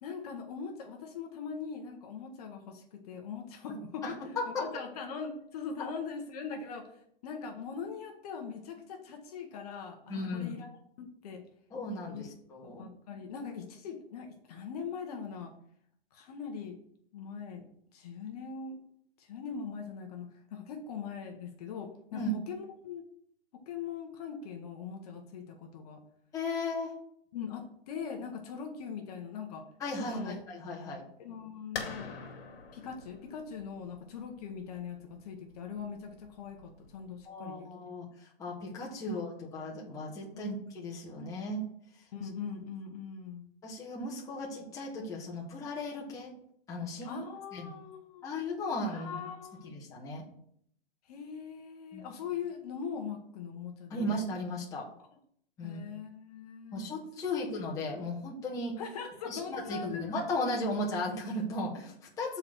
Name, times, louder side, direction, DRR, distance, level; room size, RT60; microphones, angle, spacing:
voice 1, 0.0-4.2 4.6-10.7 11.0-11.4 12.1-12.2 12.6-15.5 16.1-16.8 17.1-18.8 19.2-23.0 23.7-26.0 27.3-29.7 30.0-30.4 31.2-32.1 32.7-37.7 39.1-39.5 40.3-40.5 42.1-43.5 47.0-48.3 48.9-49.7 51.1-54.1 55.6-57.0 58.8-60.2, left 6 dB, 40° left, 3 dB, 1.0 m, -41 dB
voice 2, 3.7-4.6 10.1-10.5 11.7-12.8 22.1-22.3 26.3-26.9 29.8-31.0 37.2-41.6 43.6-46.3 46.7-47.2 47.5-47.7 48.2-49.2 49.6-50.2 51.9-52.1 53.9-54.9 55.6-55.8 56.7-58.7 59.2-62.4, left 1 dB, 10° left, -3 dB, 1.1 m, -36 dB
sound 1, 31.7-37.2, left 5 dB, 70° left, 1.8 m, -45 dB
7.0 x 4.0 x 6.0 m, 0.69 s
hypercardioid pair, 155°, 30 cm